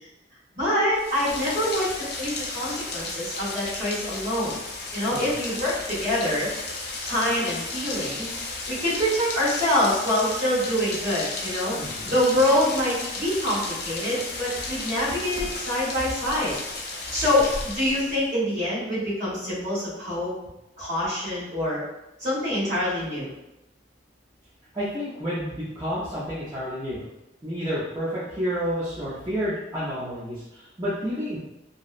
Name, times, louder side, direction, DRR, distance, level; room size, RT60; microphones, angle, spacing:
voice 1, 0.5-1.9 2.2-4.6 4.9-6.5 7.0-8.3 8.7-11.8 12.0-16.5 17.1-20.3 20.8-21.8 22.2-23.3, left 1 dB, 40° right, -10 dB, 1.4 m, -25 dB
Rain, 0.9-18.3, left 3 dB, 55° left, 0.4 m, -34 dB
voice 2, 11.8-12.2 24.7-27.0 27.4-31.4, equal, 15° right, -12 dB, 0.5 m, -30 dB
2.7 x 2.0 x 2.4 m, 0.93 s
head